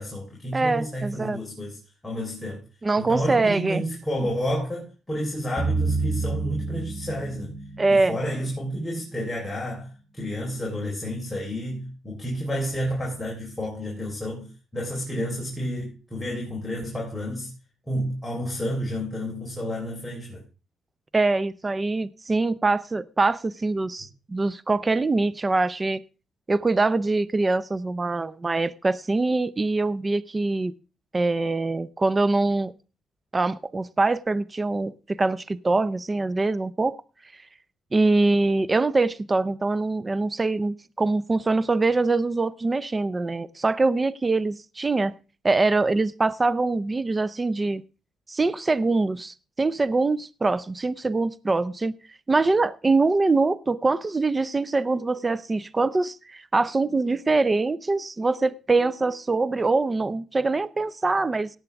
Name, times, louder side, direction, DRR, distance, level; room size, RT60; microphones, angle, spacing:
voice 1, 0.0-1.8 2.0-2.6 3.0-7.5 7.9-17.5 17.9-20.4, equal, 10° left, 3.9 m, -30 dB
voice 2, 0.5-1.4 2.8-3.8 7.8-8.2 21.1-26.0 26.5-30.7 31.1-32.7 33.3-37.0 37.9-45.1 45.4-47.8 48.3-51.9 52.3-61.5, right 3 dB, 25° right, 0.6 m, -23 dB
sound 1, 5.6-9.3, right 3 dB, 5° right, 1.6 m, -30 dB
17.5 x 8.3 x 3.4 m
cardioid pair, 100°, 0 cm